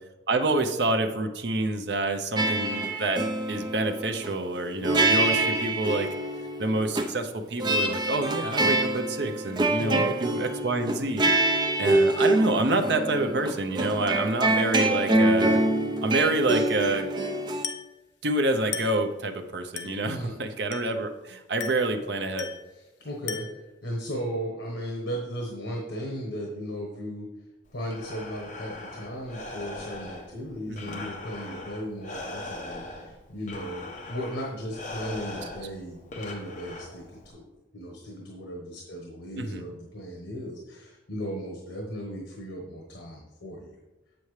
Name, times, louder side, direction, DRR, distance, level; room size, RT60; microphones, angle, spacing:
voice 1, 0.3-3.2 3.5-6.1 6.6-11.3 11.8-15.6 16.0-17.1 18.2-22.5 30.7-31.0 39.3-39.7, right 2 dB, 60° right, 5 dB, 0.7 m, -27 dB
sound 1, 2.4-4.3 4.8-7.1 7.6-17.6, right 2 dB, 25° right, 0.5 m, -25 dB
Glass, 17.6-18.0 18.7-19.1 19.8-20.1 20.7-21.1 21.6-22.0 22.4-22.7 23.3-23.7, left 8 dB, 65° left, 0.7 m, -37 dB
voice 2, 22.7-27.3 27.7-37.4 37.7-43.7, equal, 80° left, -1 dB, 1.2 m, -36 dB
Breathing, 27.7-37.3, left 2 dB, 40° left, 1.1 m, -40 dB
7.6 x 6.9 x 3.2 m, 1.0 s
head